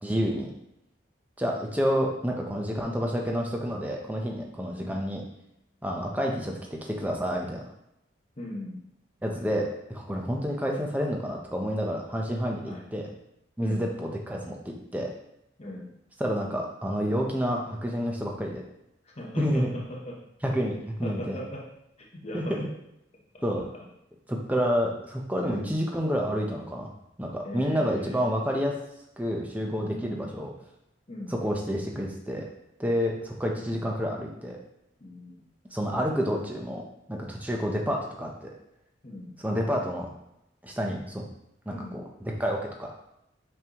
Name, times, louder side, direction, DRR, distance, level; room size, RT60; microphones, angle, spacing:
voice 1, 0.0-0.5 1.4-5.2 5.8-7.6 9.2-13.1 13.6-15.1 16.2-18.6 19.4-19.7 20.4-21.4 22.3-22.7 23.4-23.6 24.3-26.9 27.2-28.7 29.2-30.5 31.3-32.4 32.8-34.6 35.7-36.8 37.1-38.5 39.4-40.1 40.6-41.3 41.7-42.9, equal, 10° right, 0 dB, 0.7 m, -29 dB
voice 2, 8.4-8.8 12.7-12.8 13.6-13.9 15.6-15.9 19.0-20.2 21.0-21.7 22.0-22.6 23.3-23.8 25.4-25.7 27.4-28.3 29.9-30.3 31.1-31.3 33.5-33.8 35.0-35.4 39.0-39.4 41.7-42.0, left 1 dB, 35° left, -2 dB, 0.9 m, -39 dB
6.0 x 5.3 x 3.0 m, 0.81 s
head